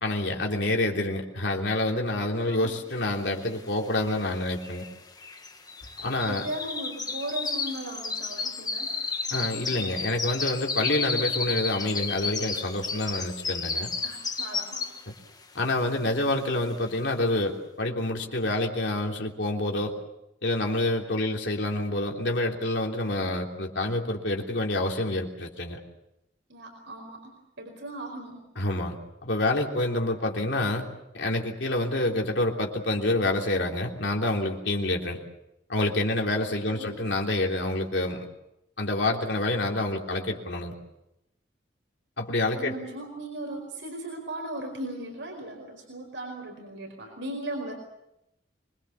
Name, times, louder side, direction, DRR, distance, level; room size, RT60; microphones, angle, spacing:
voice 1, 0.0-4.8 6.0-6.5 9.3-13.9 15.6-19.9 20.4-25.8 28.6-29.0 29.2-30.9 31.1-35.2 35.7-38.3 38.8-40.7 42.2-42.7, left 2 dB, 70° left, 1 dB, 3.4 m, -27 dB
sound 1, 3.4-3.5 3.7-15.2 15.6-15.9 16.3-16.4, left 4 dB, 20° left, 1.4 m, -32 dB
voice 2, 6.3-8.9 14.0-14.9 26.5-28.4 36.3-37.0 42.5-47.7, right 1 dB, 85° right, 2 dB, 4.8 m, -37 dB
25.0 x 22.0 x 7.1 m, 0.86 s
head